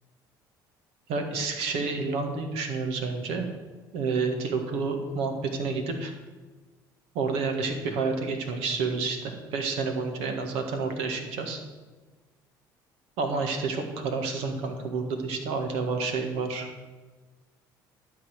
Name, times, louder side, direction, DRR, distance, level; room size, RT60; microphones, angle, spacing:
voice 1, 1.1-3.5 3.9-6.1 7.1-11.6 13.2-16.7, right 4 dB, 75° right, 5 dB, 1.7 m, -29 dB
12.5 x 4.1 x 7.9 m, 1.3 s
supercardioid pair, 75°, 10 cm